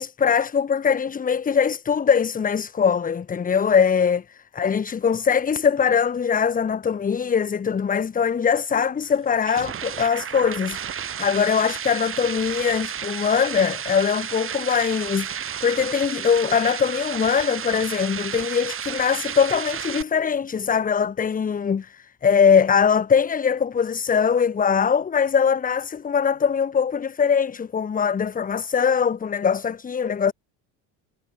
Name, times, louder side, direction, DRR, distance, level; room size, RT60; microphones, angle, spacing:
voice 1, 0.0-4.2 4.5-30.3, left 6 dB, 20° left, 1.4 m, -22 dB
sound 1, 9.0-20.0, right 8 dB, 30° right, 3.8 m, -32 dB
cardioid pair, 160°, 45 cm